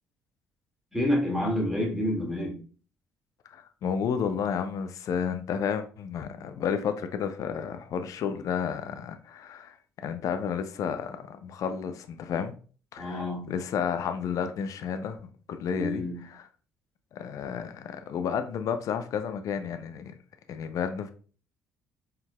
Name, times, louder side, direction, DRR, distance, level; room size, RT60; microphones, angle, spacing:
voice 1, 0.9-2.6 13.0-13.5 15.7-16.3, left 1 dB, 5° right, 2.0 m, -28 dB
voice 2, 3.5-12.5 12.9-13.2 13.5-16.0 17.1-20.1 20.5-21.1, left 7 dB, 55° left, 0.5 m, -31 dB
4.4 x 3.7 x 2.2 m
hypercardioid pair, 50°, 7 cm